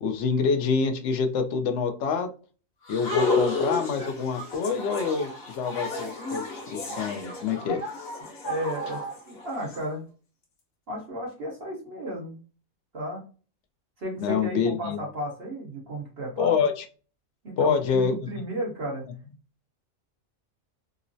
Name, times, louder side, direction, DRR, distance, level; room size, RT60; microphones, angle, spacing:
voice 1, 0.0-2.3 2.9-7.8 14.2-15.0 16.4-16.8 17.6-18.2, left 5 dB, 65° left, 6 dB, 0.8 m, -26 dB
sound 1, 2.9-9.8, left 3 dB, 50° left, 1.1 m, -31 dB
voice 2, 8.4-10.1 10.9-12.3 12.9-13.2 14.0-16.6 17.4-19.1, right 1 dB, 45° right, -2 dB, 1.2 m, -33 dB
3.8 x 2.0 x 2.6 m, 0.36 s
omnidirectional pair, 1.4 m